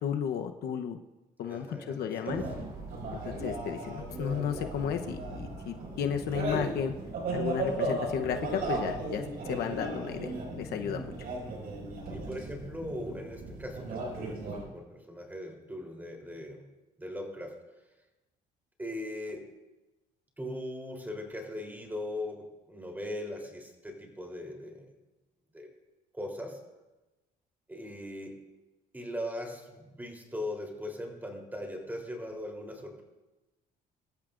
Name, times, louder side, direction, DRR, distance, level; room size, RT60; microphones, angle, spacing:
voice 1, 0.0-1.0 1.4-2.4 3.1-6.9 7.3-11.1, left 8 dB, 70° left, 5 dB, 1.0 m, -33 dB
voice 2, 1.4-2.4 12.1-16.7 17.0-17.5 18.8-19.5 20.4-24.9 25.5-25.7 26.1-26.6 27.7-28.4 28.9-33.0, left 1 dB, 10° right, 1 dB, 3.6 m, -39 dB
sound 1, 2.3-14.6, right 2 dB, 60° right, 6.0 m, -36 dB
23.5 x 14.0 x 2.6 m, 1.1 s
cardioid pair, 110°, 17 cm